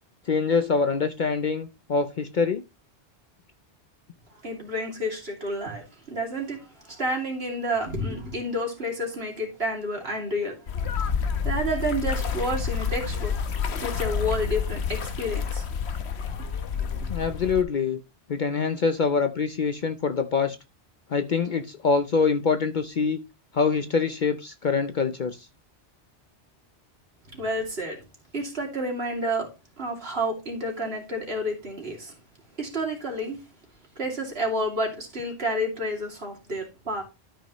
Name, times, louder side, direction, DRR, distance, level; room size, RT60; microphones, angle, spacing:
voice 1, 0.3-2.6 17.1-18.0 18.3-20.6 21.1-23.2 23.5-25.5, left 5 dB, 50° left, 0.7 m, -25 dB
voice 2, 4.4-10.6 11.4-13.3 13.8-15.7 16.9-17.1 27.3-28.0 28.3-29.5 29.8-32.1 32.6-33.4 34.0-37.0, equal, 60° right, 2.8 m, -30 dB
sound 1, 10.7-17.6, left 6 dB, 65° left, 1.2 m, -29 dB
12.5 x 5.2 x 3.0 m
omnidirectional pair, 1.2 m